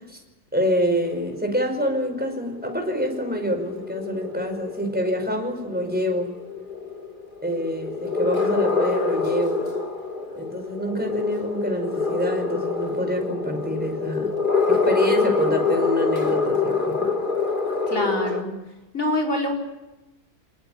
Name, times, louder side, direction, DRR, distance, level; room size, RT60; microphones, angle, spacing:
voice 1, 0.5-6.3 7.4-9.7 10.4-14.3 14.7-17.1, equal, 5° right, 3 dB, 5.5 m, -26 dB
sound 1, 1.0-18.4, left 4 dB, 30° left, 2.5 m, -26 dB
voice 2, 17.9-18.5 18.9-19.6, left 1 dB, 55° left, 3 dB, 5.3 m, -25 dB
28.5 x 20.5 x 8.9 m, 1.0 s
omnidirectional pair, 1.7 m